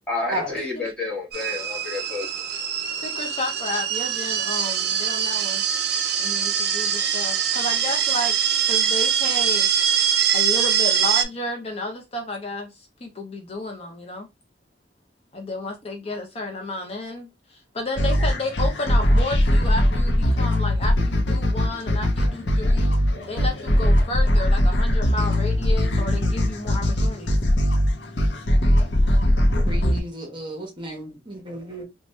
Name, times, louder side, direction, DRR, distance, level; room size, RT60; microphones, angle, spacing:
voice 1, 0.1-2.3, left 3 dB, 5° left, 1.1 m, -29 dB
sound 1, 1.3-11.2, right 8 dB, 60° right, 0.5 m, -23 dB
voice 2, 3.0-5.6 6.2-8.3 8.6-9.7 10.3-14.3 15.3-22.9 23.3-27.4, left 2 dB, 35° left, 0.5 m, -32 dB
sound 2, 18.0-30.0, equal, 80° left, 0.7 m, -20 dB
voice 3, 29.5-31.8, right 1 dB, 30° right, 0.9 m, -33 dB
2.9 x 2.2 x 3.0 m
head